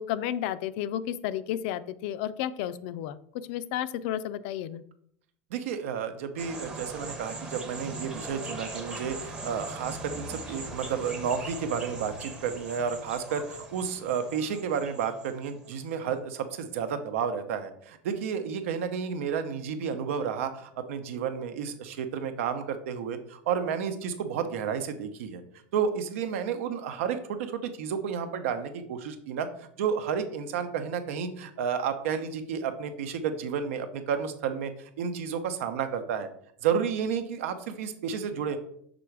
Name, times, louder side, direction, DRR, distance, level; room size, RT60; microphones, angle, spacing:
voice 1, 0.0-4.8, left 11 dB, 55° left, 15 dB, 0.4 m, -32 dB
voice 2, 5.5-25.4 25.7-29.5 29.8-34.7 35.0-36.3 36.6-38.6, right 7 dB, 90° right, 8 dB, 0.8 m, -31 dB
sound 1, 6.4-15.9, right 2 dB, 10° right, 0.7 m, -40 dB
6.0 x 3.9 x 4.6 m, 0.67 s
supercardioid pair, 175°, 7 cm